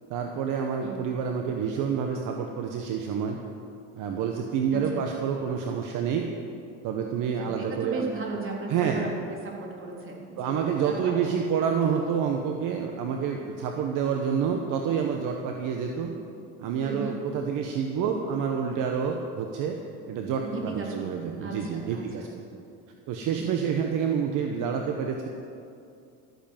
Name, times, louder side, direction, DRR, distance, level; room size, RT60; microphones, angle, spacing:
voice 1, 0.1-3.4 3.9-6.3 6.8-8.1 8.7-9.1 10.4-16.1 16.6-19.8 20.1-22.3 23.1-25.3, right 7 dB, 60° right, 3 dB, 1.3 m, -28 dB
voice 2, 4.7-5.0 7.4-9.1 9.4-10.6 10.9-11.1 16.8-17.1 20.4-22.3 23.4-23.6, right 4 dB, 35° right, -2 dB, 3.5 m, -36 dB
13.5 x 9.1 x 7.5 m, 2.5 s
supercardioid pair, 105°, 35 cm